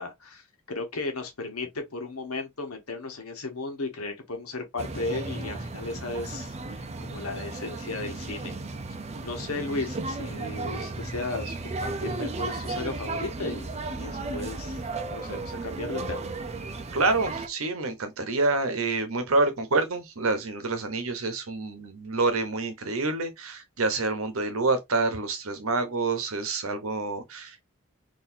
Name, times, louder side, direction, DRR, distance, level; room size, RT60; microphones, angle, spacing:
voice 1, 0.0-8.6 9.2-14.8 15.1-16.2, left 3 dB, 80° left, 1.1 m, -35 dB
sound 1, 4.8-17.5, right 3 dB, 30° right, 0.5 m, -34 dB
voice 2, 16.9-27.6, right 3 dB, 70° right, 0.9 m, -27 dB
3.9 x 2.7 x 2.7 m
head